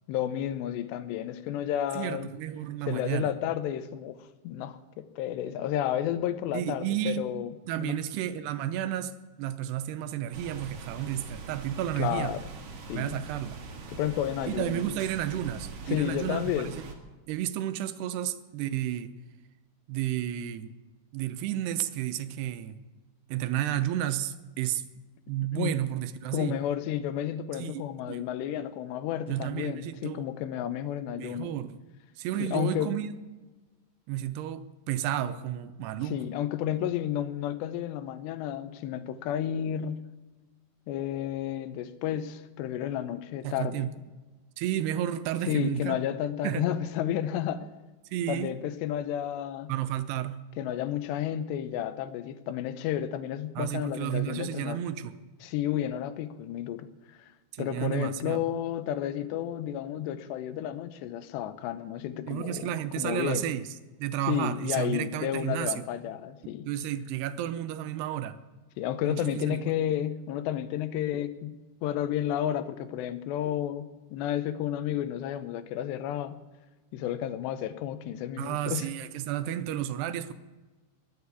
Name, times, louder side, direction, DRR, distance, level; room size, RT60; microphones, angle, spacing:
voice 1, 0.1-2.3 2.9-4.2 4.4-8.0 12.0-12.5 12.9-13.2 13.9-14.8 15.9-16.7 25.5-25.8 26.3-31.6 32.4-33.0 36.0-40.0 40.9-43.9 45.5-47.7 48.3-49.7 50.6-54.8 55.4-56.9 57.6-63.5 64.3-66.7 68.8-76.4 76.9-78.9, left 11 dB, 90° left, 3.1 m, -32 dB
voice 2, 2.0-3.3 6.5-7.2 7.7-9.1 9.4-12.3 12.9-13.6 14.5-16.9 17.3-19.1 19.9-20.7 21.1-22.8 23.3-24.8 25.3-26.6 27.6-27.8 28.1-28.3 29.3-30.3 31.1-31.8 32.2-33.2 34.1-36.2 43.4-43.9 44.6-46.0 46.4-46.6 48.1-48.5 49.7-50.4 53.6-55.2 57.5-58.4 62.3-63.6 64.0-65.9 66.7-68.4 69.0-69.7 78.4-80.3, right 11 dB, 80° right, 2.8 m, -32 dB
sound 1, 10.3-16.9, right 4 dB, 55° right, 2.6 m, -43 dB
21.5 x 7.8 x 8.4 m
omnidirectional pair, 4.8 m